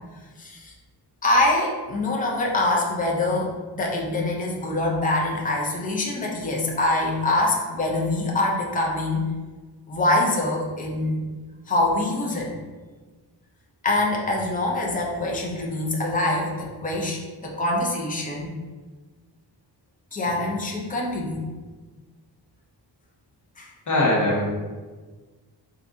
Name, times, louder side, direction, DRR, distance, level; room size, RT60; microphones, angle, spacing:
voice 1, 0.4-0.7 1.2-9.3 9.9-11.2 11.7-12.5 13.8-18.5 20.1-21.4 23.6-23.7, left 2 dB, 20° left, -2 dB, 0.5 m, -24 dB
voice 2, 23.9-24.5, left 1 dB, 45° left, -4 dB, 0.9 m, -21 dB
3.4 x 2.6 x 2.6 m, 1.3 s
wide cardioid pair, 155°, 41 cm